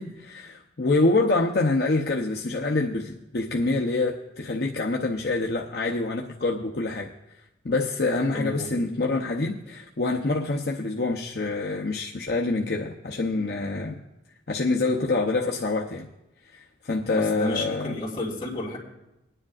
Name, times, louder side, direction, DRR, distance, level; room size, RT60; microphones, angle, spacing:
voice 1, 0.0-7.1 7.6-14.0 14.5-16.1 16.5-17.9, left 2 dB, 55° left, 0.7 m, -26 dB
voice 2, 8.3-8.7 17.1-18.8, left 1 dB, 25° left, 3.0 m, -31 dB
21.0 x 10.0 x 2.4 m
head